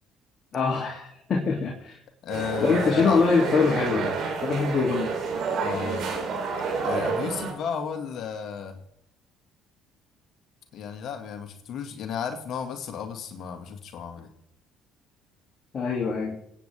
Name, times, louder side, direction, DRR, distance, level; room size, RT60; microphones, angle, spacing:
voice 1, 0.5-1.9 2.6-4.1 4.4-5.1 15.7-16.4, left 5 dB, 45° left, -3 dB, 2.8 m, -24 dB
voice 2, 2.2-3.3 3.9-4.1 5.6-6.0 6.8-8.8 10.7-14.3, left 7 dB, 60° left, 5 dB, 2.0 m, -33 dB
sound 1, 2.3-7.5, right 4 dB, 65° right, 3.6 m, -29 dB
25.5 x 9.1 x 3.5 m, 0.75 s
hypercardioid pair, 65°, 0 cm